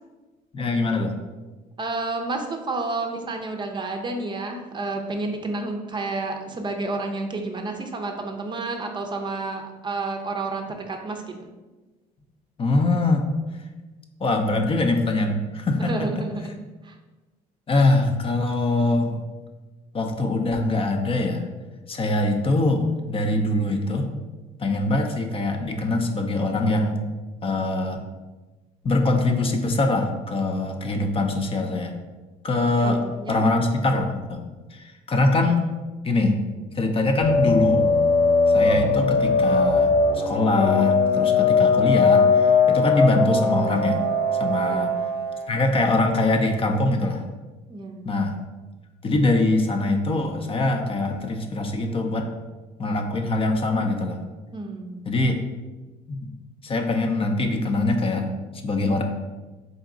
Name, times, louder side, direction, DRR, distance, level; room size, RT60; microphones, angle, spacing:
voice 1, 0.5-1.1 12.6-13.3 14.2-16.3 17.7-19.2 19.9-21.4 21.9-24.1 24.6-27.0 27.4-28.0 28.8-32.0 32.4-33.0 33.3-34.4 34.7-35.7 36.0-36.4 36.7-37.9 38.5-44.0 44.4-44.9 45.5-47.2 48.0-48.4 49.0-52.3 52.8-54.2 55.0-55.3 56.1-56.2 56.6-58.3 58.6-59.0, left 2 dB, 35° left, 4 dB, 0.6 m, -23 dB
voice 2, 1.8-11.2 15.8-16.5 16.8-16.9 32.8-33.4 44.7-44.9 47.7-48.1 54.5-55.1, right 3 dB, 25° right, 3 dB, 0.6 m, -30 dB
sound 1, 37.2-46.5, left 4 dB, 70° left, 0.8 m, -20 dB
4.0 x 3.5 x 3.7 m, 1.2 s
cardioid pair, 110°, 17 cm